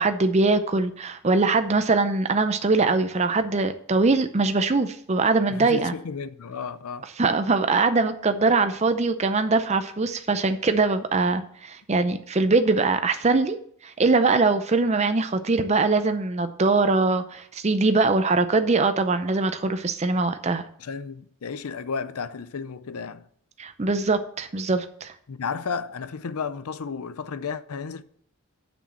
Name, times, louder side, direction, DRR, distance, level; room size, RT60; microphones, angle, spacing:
voice 1, 0.0-5.9 7.2-13.6 13.8-20.6 23.6-25.1, right 3 dB, 30° right, 0.5 m, -22 dB
voice 2, 5.5-7.1 20.8-23.3 25.3-28.0, left 5 dB, 80° left, 0.6 m, -33 dB
7.2 x 6.2 x 7.1 m
head